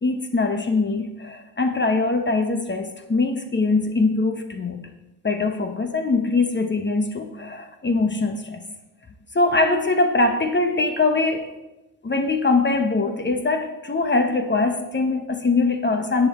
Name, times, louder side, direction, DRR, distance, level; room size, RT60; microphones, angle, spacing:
voice 1, 0.0-4.8 5.2-8.6 9.3-11.5 12.0-16.3, left 3 dB, 30° left, 6 dB, 1.1 m, -22 dB
10.5 x 8.3 x 4.4 m, 1.0 s
cardioid pair, 65°, 37 cm